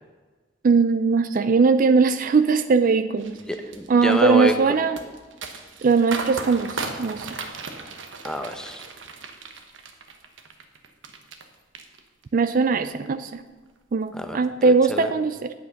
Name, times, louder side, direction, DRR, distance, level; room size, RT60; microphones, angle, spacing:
voice 1, 0.6-3.4 3.9-5.0 5.8-7.3 12.3-13.4 13.9-15.5, right 4 dB, 45° right, 11 dB, 0.4 m, -20 dB
sound 1, 3.2-11.4 11.7-12.4 12.8-13.1, right 4 dB, 75° right, 1.1 m, -37 dB
voice 2, 3.4-4.7 8.2-8.8 14.1-15.1, equal, 5° left, 7 dB, 0.7 m, -28 dB
9.5 x 8.5 x 5.8 m, 1.3 s
head